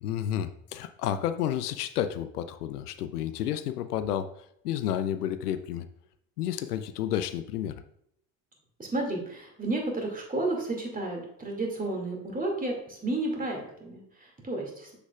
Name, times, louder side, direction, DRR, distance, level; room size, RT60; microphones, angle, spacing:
voice 1, 0.0-4.3 4.6-5.9 6.4-7.7, left 10 dB, 80° left, 11 dB, 0.5 m, -31 dB
voice 2, 8.8-14.9, right 2 dB, 20° right, 1 dB, 2.3 m, -32 dB
7.2 x 6.6 x 2.4 m, 0.74 s
figure-of-eight pair, 60°, 46 cm